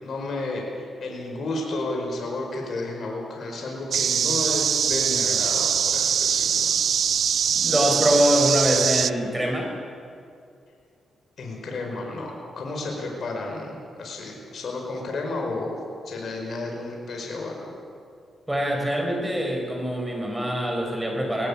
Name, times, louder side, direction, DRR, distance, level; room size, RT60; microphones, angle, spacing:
voice 1, 0.0-6.7 11.4-15.7 16.1-17.7, left 2 dB, 60° left, 0 dB, 5.1 m, -32 dB
sound 1, 3.9-9.1, right 8 dB, 65° right, 0.4 m, -23 dB
voice 2, 7.5-9.7 18.5-21.5, equal, 10° right, 1 dB, 4.8 m, -24 dB
20.5 x 16.0 x 8.7 m, 2.4 s
cardioid pair, 80°, 0 cm